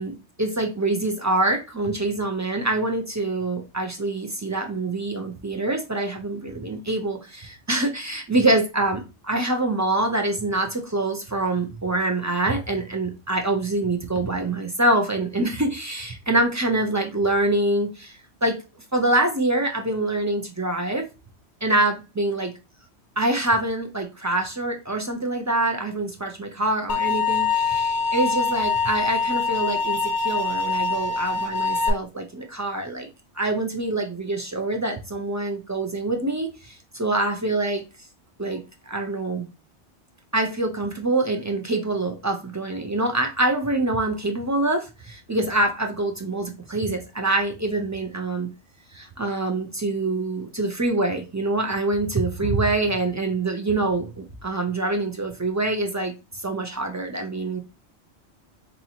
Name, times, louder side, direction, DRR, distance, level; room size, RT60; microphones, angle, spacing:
voice 1, 0.0-18.6 18.9-21.0 21.6-22.5 23.2-33.1 33.4-37.8 38.4-39.5 40.3-48.5 48.9-57.6, right 2 dB, 30° right, 3 dB, 0.3 m, -25 dB
sound 1, 26.9-31.9, left 4 dB, 80° left, 0.9 m, -24 dB
4.4 x 2.7 x 2.8 m, 0.28 s
omnidirectional pair, 1.2 m